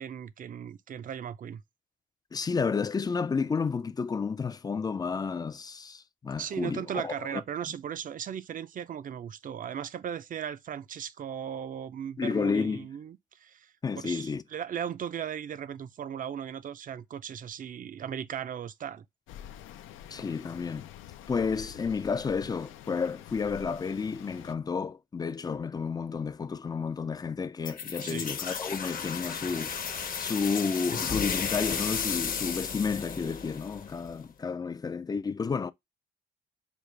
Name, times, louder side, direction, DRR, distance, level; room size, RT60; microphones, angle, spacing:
voice 1, 0.0-1.6 6.4-13.7 14.0-19.0 28.0-28.3, right 8 dB, 45° right, 0.5 m, -37 dB
voice 2, 2.3-7.4 12.2-12.9 13.8-14.4 20.1-20.9 21.3-29.8 30.2-35.7, left 5 dB, 20° left, 0.3 m, -31 dB
sound 1, 19.3-24.5, left 11 dB, 90° left, 0.5 m, -47 dB
Dissolve metal spell, 27.6-34.3, left 6 dB, 45° left, 0.8 m, -34 dB
5.1 x 2.4 x 3.2 m
cardioid pair, 90°, 20 cm